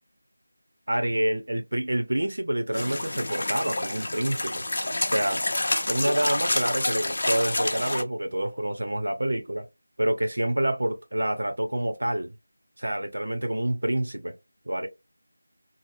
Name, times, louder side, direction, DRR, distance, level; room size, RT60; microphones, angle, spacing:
voice 1, 0.9-4.6 5.0-5.4 5.9-9.7 10.0-12.3 12.8-14.4 14.7-14.9, right 1 dB, 80° right, 0.7 m, -27 dB
sound 1, 2.7-8.0, left 2 dB, 45° left, 0.5 m, -28 dB
2.6 x 2.0 x 2.5 m
figure-of-eight pair, 175°, 0 cm